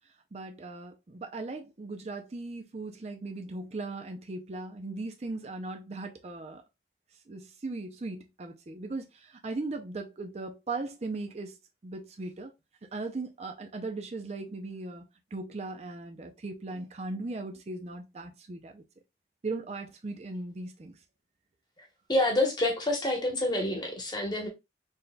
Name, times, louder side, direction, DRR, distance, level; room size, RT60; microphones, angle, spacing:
voice 1, 0.3-6.6 7.3-11.6 11.8-12.5 12.9-15.0 15.3-18.8 19.4-21.0, right 3 dB, 35° right, 0.4 m, -38 dB
voice 2, 22.1-24.5, left 1 dB, 25° left, 1.1 m, -27 dB
4.1 x 3.4 x 2.2 m
head